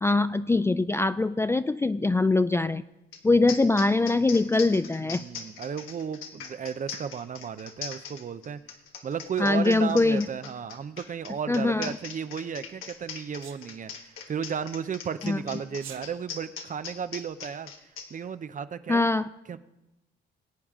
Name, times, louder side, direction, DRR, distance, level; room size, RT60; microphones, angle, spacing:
voice 1, 0.0-2.8 3.2-5.2 9.4-10.3 11.5-12.0 15.2-15.4 18.9-19.3, left 3 dB, 15° left, 12 dB, 0.3 m, -23 dB
sound 1, 3.1-3.2 3.5-18.1, left 6 dB, 90° left, 1.5 m, -40 dB
voice 2, 5.0-8.6 9.0-17.7 18.1-19.1 19.5-19.6, right 7 dB, 40° right, 13 dB, 0.6 m, -34 dB
Sneeze, 13.4-13.6 15.7-16.0, right 9 dB, 80° right, 1.2 m, -43 dB
21.5 x 8.7 x 3.7 m, 0.96 s
cardioid pair, 90°, 20 cm